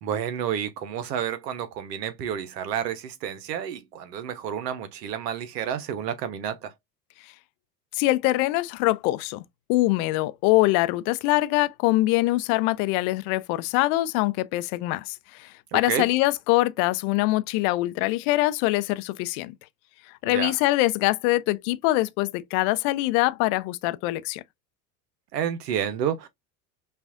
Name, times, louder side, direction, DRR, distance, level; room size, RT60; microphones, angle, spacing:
voice 1, 0.0-6.7 15.7-16.1 20.2-20.6 25.3-26.3, right 9 dB, 80° right, 1.0 m, -30 dB
voice 2, 7.9-9.4 9.7-19.5 20.2-24.4, left 18 dB, 60° left, 0.6 m, -23 dB
5.6 x 2.5 x 2.4 m
hypercardioid pair, 70°, 48 cm